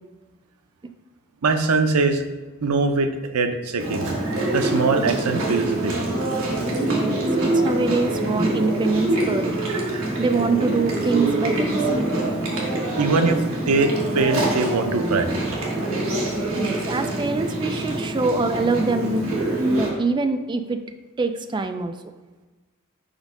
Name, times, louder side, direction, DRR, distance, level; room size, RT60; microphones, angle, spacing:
voice 1, 1.4-2.2 2.6-3.1 3.3-4.1 4.5-5.9 9.7-10.0 13.0-15.4 16.1-16.8, right 3 dB, 90° right, 7 dB, 0.6 m, -22 dB
Chewing mastication, 3.8-19.9, right 1 dB, 60° right, 1.3 m, -25 dB
voice 2, 7.0-9.6 10.2-12.1 16.5-19.3 19.7-20.8 21.2-22.0, right 3 dB, 20° right, 8 dB, 0.3 m, -24 dB
5.1 x 3.6 x 5.2 m, 1.3 s
head